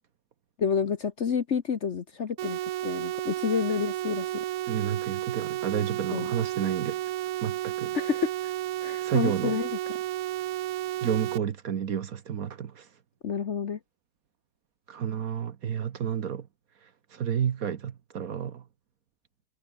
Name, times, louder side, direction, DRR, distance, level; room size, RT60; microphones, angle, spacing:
voice 1, 0.6-4.4 6.1-6.3 7.9-8.3 8.8-9.7 13.2-13.8, left 6 dB, 45° left, 1.1 m, -29 dB
sound 1, 2.4-11.4, right 14 dB, 75° right, 0.7 m, -32 dB
voice 2, 4.7-7.0 7.4-8.0 9.0-9.6 11.0-12.9 14.9-16.5 16.8-18.6, right 8 dB, 55° right, 1.3 m, -31 dB
omnidirectional pair, 2.0 m